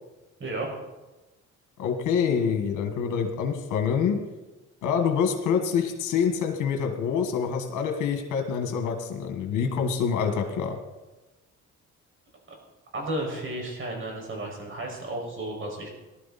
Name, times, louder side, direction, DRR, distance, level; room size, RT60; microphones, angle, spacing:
voice 1, 1.8-4.2 4.8-10.8, left 6 dB, 85° left, 4 dB, 1.8 m, -26 dB
voice 2, 12.9-15.9, right 1 dB, 40° right, 0 dB, 6.1 m, -33 dB
19.0 x 12.5 x 4.3 m, 1.1 s
cardioid pair, 90°, 30 cm